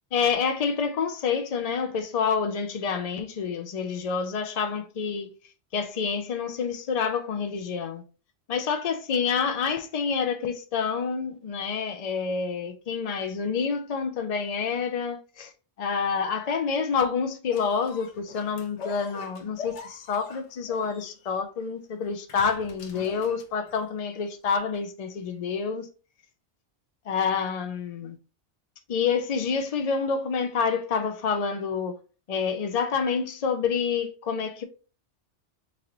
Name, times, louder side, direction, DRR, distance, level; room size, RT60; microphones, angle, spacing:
voice 1, 0.1-5.3 5.7-8.0 8.5-15.5 15.8-25.9 27.1-28.2 28.9-32.0 32.3-34.6, left 6 dB, 65° left, 0.3 m, -28 dB
sound 1, 17.5-24.0 24.7-24.8, left 5 dB, 85° left, 1.1 m, -43 dB
3.8 x 3.1 x 2.8 m
omnidirectional pair, 1.2 m